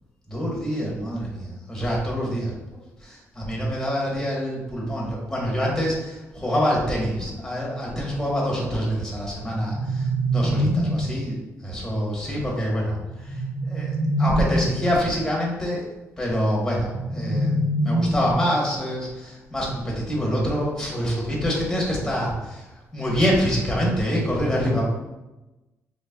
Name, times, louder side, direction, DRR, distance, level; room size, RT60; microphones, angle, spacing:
voice 1, 0.3-11.4 11.6-15.9 16.2-24.8, equal, 5° left, -4 dB, 1.1 m, -26 dB
sound 1, 9.4-11.2 13.0-14.9 16.8-18.7, right 1 dB, 70° right, 0.9 m, -25 dB
4.1 x 3.2 x 2.3 m, 1.0 s
cardioid pair, 105°, 6 cm